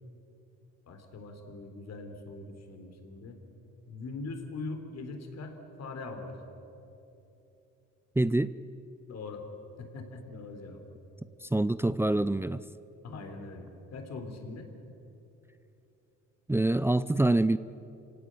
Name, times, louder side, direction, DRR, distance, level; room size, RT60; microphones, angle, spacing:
voice 1, 0.9-3.4 3.9-6.4 9.1-9.4 9.8-10.8 13.0-14.7, left 3 dB, 60° left, 5 dB, 3.8 m, -41 dB
voice 2, 8.2-8.5 11.4-12.6 16.5-17.6, right 2 dB, 10° right, 14 dB, 0.5 m, -25 dB
27.5 x 17.5 x 9.3 m, 3.0 s
cardioid pair, 90°, 30 cm